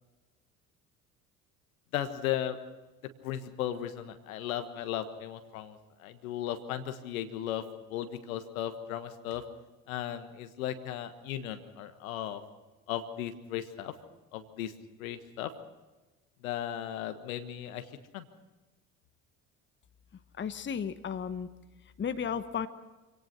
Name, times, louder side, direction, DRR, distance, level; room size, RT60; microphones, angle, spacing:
voice 1, 1.9-2.6 3.2-7.6 7.9-9.4 9.9-12.4 12.9-13.9 14.3-14.7 15.0-15.5 16.4-17.9 18.1-18.2, left 11 dB, 70° left, 10 dB, 1.4 m, -36 dB
voice 2, 20.4-21.5 22.0-22.7, left 7 dB, 25° left, 11 dB, 1.1 m, -34 dB
25.5 x 17.5 x 6.0 m, 1.2 s
figure-of-eight pair, 55°, 43 cm